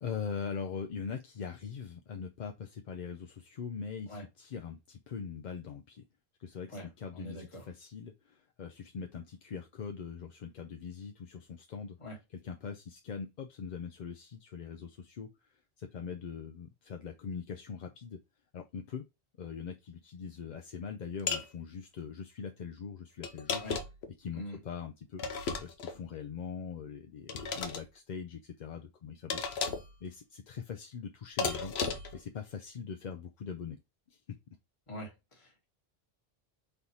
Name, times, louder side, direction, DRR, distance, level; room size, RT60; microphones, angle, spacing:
voice 1, 0.0-6.0 6.4-12.0 12.3-18.2 18.5-19.0 19.4-23.6 24.2-25.2 25.6-29.4 30.0-31.7 32.1-33.8 34.1-34.4, left 6 dB, 55° left, 0.6 m, -42 dB
voice 2, 7.1-7.7 12.0-12.2 23.6-23.8 24.3-24.6 34.9-35.6, equal, 30° left, 1.5 m, -44 dB
sound 1, 21.3-21.5 23.2-24.1 25.2-26.0 27.3-27.8 29.3-29.9 31.4-32.2, left 5 dB, 85° left, 1.0 m, -34 dB
3.9 x 3.4 x 2.8 m
omnidirectional pair, 1.0 m